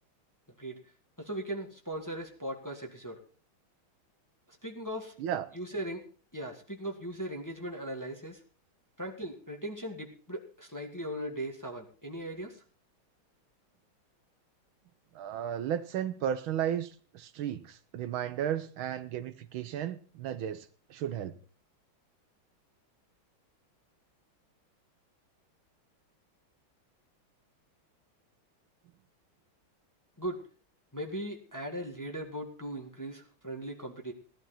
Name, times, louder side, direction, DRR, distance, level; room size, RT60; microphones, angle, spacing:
voice 1, 1.2-3.2 4.5-5.1 5.5-6.1 6.3-8.4 9.0-12.6 30.2-30.4 30.9-34.1, right 1 dB, 10° left, 0 dB, 1.6 m, -38 dB
voice 2, 15.1-21.4, right 10 dB, 75° right, 11 dB, 1.6 m, -34 dB
17.0 x 11.5 x 4.2 m, 0.40 s
omnidirectional pair, 2.3 m